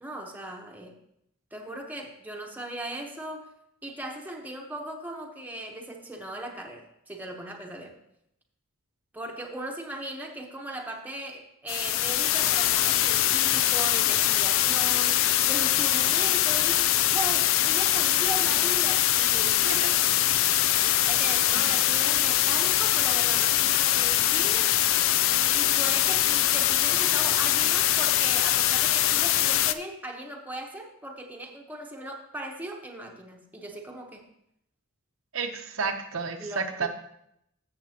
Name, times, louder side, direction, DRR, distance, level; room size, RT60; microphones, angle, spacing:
voice 1, 0.0-1.0 1.5-3.5 3.8-8.0 9.1-20.0 20.8-24.8 25.5-34.3 36.4-36.9, right 1 dB, 10° right, 1 dB, 1.0 m, -38 dB
sound 1, 11.7-29.7, left 12 dB, 70° left, 0.4 m, -23 dB
voice 2, 19.5-19.9 35.3-36.9, right 5 dB, 75° right, 4 dB, 0.9 m, -31 dB
13.5 x 7.3 x 2.9 m, 0.76 s
head